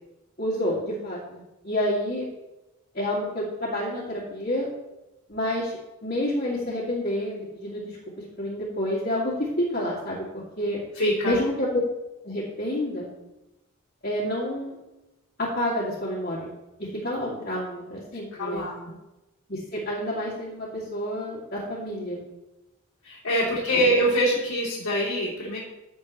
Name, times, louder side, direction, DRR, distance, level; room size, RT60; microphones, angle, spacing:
voice 1, 0.4-2.3 2.9-4.7 5.3-8.0 8.4-10.8 11.2-11.7 12.2-13.1 14.0-14.8 15.4-16.5 16.8-18.6 19.5-22.2 23.7-23.9, left 1 dB, 45° left, -8 dB, 2.5 m, -29 dB
voice 2, 10.9-11.4 18.4-18.8 23.0-25.6, equal, 85° left, -7 dB, 3.2 m, -24 dB
15.0 x 7.8 x 3.2 m, 0.99 s
head